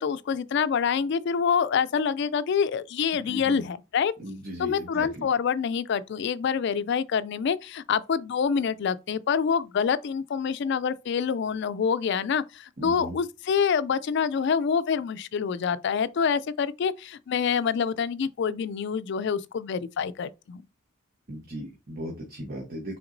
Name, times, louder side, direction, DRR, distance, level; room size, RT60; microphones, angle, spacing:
voice 1, 0.0-4.1 4.6-20.6, left 6 dB, 55° left, 0.3 m, -26 dB
voice 2, 3.1-3.6 4.2-5.3 12.8-13.2 21.3-23.0, equal, 45° right, 1.0 m, -37 dB
5.8 x 3.5 x 2.6 m
head